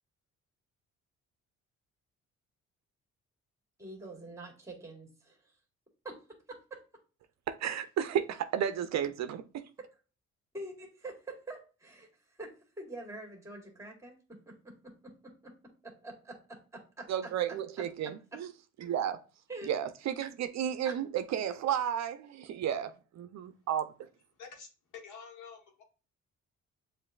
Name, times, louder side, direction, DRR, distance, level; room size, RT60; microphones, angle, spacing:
voice 1, 3.8-5.6 6.0-6.2 6.5-6.8 7.7-7.8 10.5-15.5 15.8-17.1 19.5-19.7 20.8-20.9, right 2 dB, 10° right, 1.8 m, -46 dB
voice 2, 7.5-9.6 17.1-18.5 18.8-19.2 19.6-23.9, right 9 dB, 65° right, 0.5 m, -33 dB
voice 3, 25.0-25.8, left 5 dB, 80° left, 1.3 m, -48 dB
7.4 x 2.6 x 2.3 m
cardioid pair, 90°, 30 cm